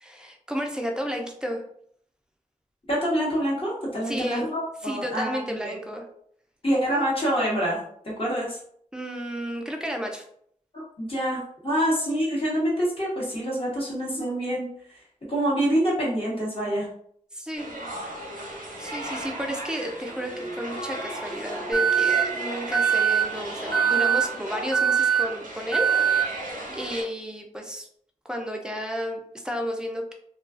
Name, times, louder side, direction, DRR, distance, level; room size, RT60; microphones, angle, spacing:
voice 1, 0.0-1.6 4.0-4.5 4.8-6.1 8.9-10.3 17.3-17.7 18.4-26.4 26.7-27.9 28.2-30.1, equal, 5° right, 2 dB, 0.5 m, -32 dB
voice 2, 2.9-5.8 6.6-7.8 8.0-8.6 10.7-14.7 15.3-16.9, equal, 45° left, -5 dB, 1.0 m, -26 dB
sound 1, 17.6-27.0, right 1 dB, 85° right, 0.6 m, -36 dB
Alarm, 20.1-23.4 23.8-24.1, right 1 dB, 80° left, 1.2 m, -41 dB
Alarm 2, 21.7-22.2 22.7-23.2 23.7-24.2 24.7-25.2 25.7-26.2, right 8 dB, 25° left, 0.7 m, -21 dB
2.3 x 2.3 x 2.4 m, 0.66 s
wide cardioid pair, 65°, 14 cm